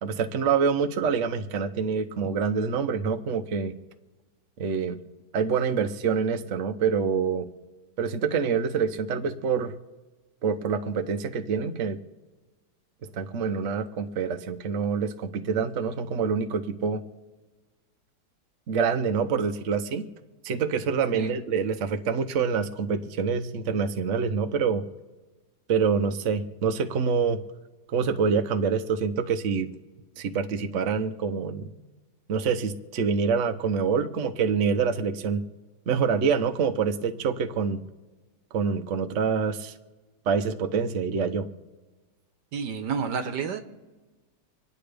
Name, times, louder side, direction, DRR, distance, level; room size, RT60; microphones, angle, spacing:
voice 1, 0.0-3.7 4.6-5.0 5.3-7.5 8.0-9.7 10.4-12.0 13.1-17.0 18.7-20.0 20.4-24.8 25.7-27.4 27.9-29.7 30.2-31.7 32.3-35.4 35.9-37.8 38.5-39.7 40.3-41.5, right 6 dB, 55° right, 7 dB, 1.0 m, -26 dB
voice 2, 42.5-43.6, right 6 dB, 85° right, 7 dB, 1.6 m, -30 dB
27.0 x 9.6 x 3.4 m, 1.2 s
omnidirectional pair, 1.8 m